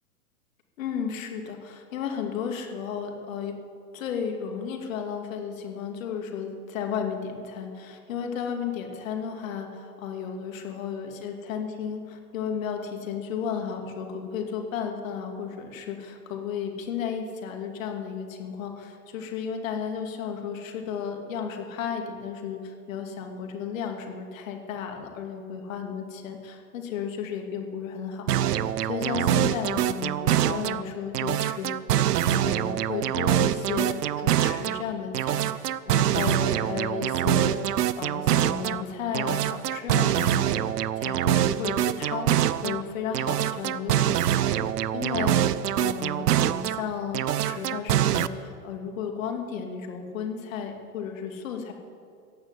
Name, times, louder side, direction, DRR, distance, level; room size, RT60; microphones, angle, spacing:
voice 1, 0.8-3.5 3.9-28.3 28.8-31.7 32.3-44.5 44.9-45.4 45.8-51.7, left 7 dB, 60° left, 3 dB, 2.6 m, -33 dB
sound 1, 28.3-30.8 31.1-34.8 35.1-38.8 39.1-42.8 43.1-46.8 47.1-48.3, right 11 dB, 90° right, 0.7 m, -25 dB
15.0 x 9.1 x 9.7 m, 2.3 s
hypercardioid pair, 145°, 46 cm